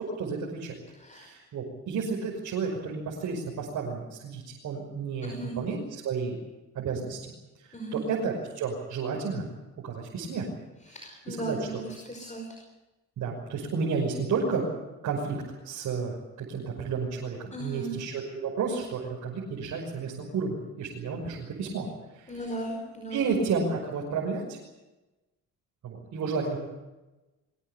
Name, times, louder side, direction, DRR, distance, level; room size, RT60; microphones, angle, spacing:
voice 1, 0.0-0.7 1.1-6.3 6.7-7.2 7.6-9.5 9.8-10.5 11.3-11.6 13.2-14.6 15.0-15.4 15.6-21.9 22.1-22.3 23.1-24.6 25.8-26.6, right 5 dB, 70° right, -3 dB, 5.9 m, -31 dB
voice 2, 0.9-1.3 5.2-5.6 7.7-8.1 10.9-12.6 17.5-18.0 22.3-23.3, right 1 dB, 25° left, 3 dB, 5.4 m, -37 dB
23.0 x 18.5 x 8.3 m, 1.1 s
cardioid pair, 90°, 30 cm